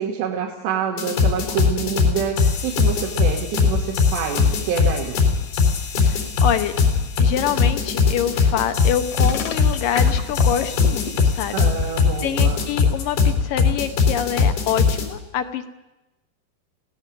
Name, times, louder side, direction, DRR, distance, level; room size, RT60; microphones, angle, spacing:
voice 1, 0.0-5.1 11.5-12.7, right 7 dB, 85° right, -1 dB, 4.2 m, -27 dB
sound 1, 1.0-15.1, left 5 dB, 85° left, 5.8 m, -20 dB
voice 2, 6.0-6.7 7.2-11.6 11.8-11.9 12.2-15.7, left 9 dB, 70° left, 9 dB, 2.2 m, -26 dB
sound 2, 9.1-11.2, left 7 dB, 50° left, 1.9 m, -31 dB
23.5 x 17.0 x 7.6 m, 1.0 s
omnidirectional pair, 4.9 m